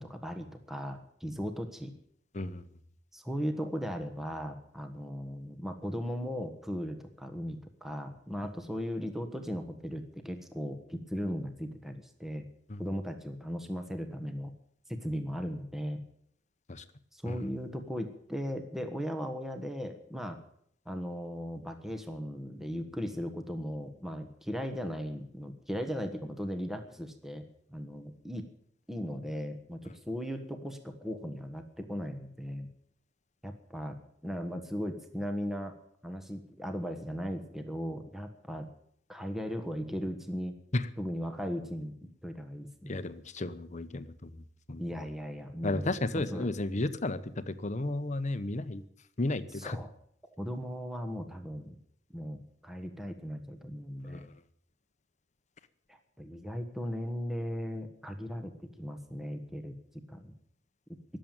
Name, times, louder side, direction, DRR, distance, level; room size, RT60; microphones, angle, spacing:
voice 1, 0.0-1.9 3.1-12.4 12.8-14.5 14.9-16.0 17.1-20.4 20.9-27.4 27.7-28.5 28.9-32.7 33.4-34.0 34.2-35.7 36.0-38.7 39.1-40.6 41.0-41.9 42.2-43.0 44.8-45.9 46.1-46.4 49.6-49.9 50.4-51.8 52.1-54.3 55.9-59.7 60.1-60.3, equal, ahead, 6 dB, 1.3 m, -37 dB
voice 2, 42.9-44.8 45.6-48.8 49.2-49.8 54.1-54.3, left 2 dB, 40° left, 12 dB, 1.0 m, -33 dB
20.0 x 7.7 x 9.0 m, 0.68 s
head